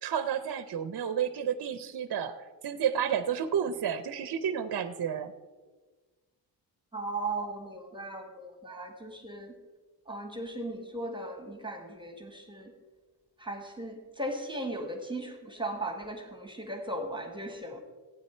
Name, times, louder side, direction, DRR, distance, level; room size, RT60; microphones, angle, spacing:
voice 1, 0.0-5.3, right 8 dB, 55° right, 11 dB, 0.7 m, -31 dB
voice 2, 6.9-9.5 10.1-12.7 13.4-17.8, right 2 dB, 10° right, 4 dB, 1.4 m, -37 dB
16.0 x 8.9 x 4.4 m, 1.3 s
wide cardioid pair, 140°, 43 cm